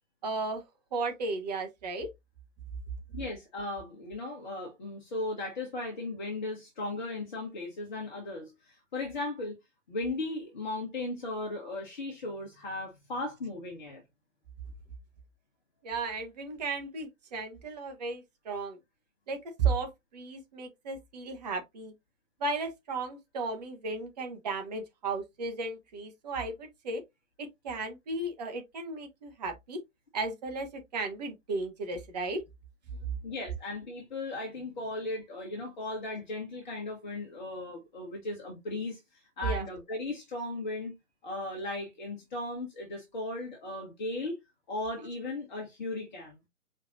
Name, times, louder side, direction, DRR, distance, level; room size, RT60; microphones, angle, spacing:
voice 1, 0.2-0.6 0.9-2.1 15.8-18.8 19.3-21.9 22.4-27.0 27.4-29.8 30.1-32.4 39.4-39.7, right 3 dB, 30° right, 1.1 m, -34 dB
voice 2, 3.1-9.6 9.9-14.0 33.2-40.9 41.2-44.4 44.7-46.3, left 2 dB, 35° left, 1.3 m, -37 dB
4.6 x 3.3 x 2.6 m
figure-of-eight pair, 130°, 40 cm